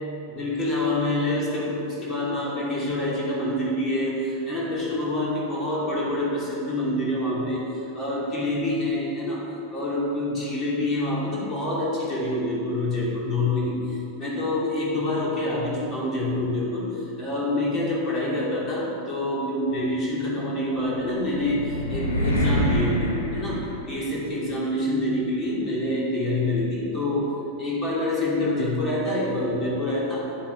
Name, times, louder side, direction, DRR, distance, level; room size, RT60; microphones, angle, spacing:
voice 1, 0.3-9.4 9.7-27.3 27.6-30.3, left 1 dB, 25° left, -5 dB, 2.9 m, -26 dB
sound 1, 20.8-24.3, equal, 80° left, 1.8 m, -26 dB
10.5 x 9.4 x 4.6 m, 2.7 s
figure-of-eight pair, 90°, 0 cm